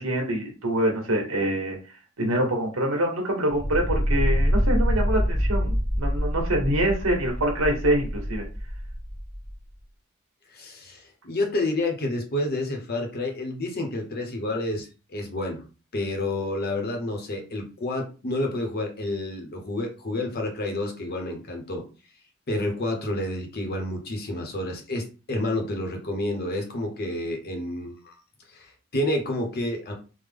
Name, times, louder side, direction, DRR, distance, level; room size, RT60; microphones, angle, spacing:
voice 1, 0.0-1.8 2.2-8.4, right 1 dB, 80° right, 1 dB, 1.2 m, -25 dB
sound 1, 3.5-9.5, equal, 10° left, 0.6 m, -26 dB
voice 2, 10.5-15.6 15.9-21.8 22.5-28.2 28.5-29.9, left 1 dB, 45° left, 3 dB, 0.8 m, -29 dB
3.4 x 2.0 x 3.4 m, 0.33 s
head